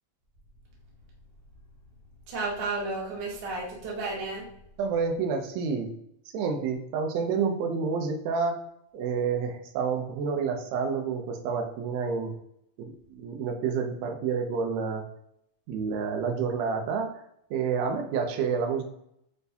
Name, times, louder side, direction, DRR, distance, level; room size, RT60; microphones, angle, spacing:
voice 1, 2.3-4.4, right 3 dB, 60° right, -4 dB, 1.2 m, -32 dB
voice 2, 4.8-5.9 6.3-8.6 8.9-12.3 12.8-15.0 15.7-17.1 17.5-18.8, right 5 dB, 75° right, 3 dB, 1.7 m, -29 dB
6.5 x 2.2 x 2.7 m, 0.74 s
omnidirectional pair, 3.7 m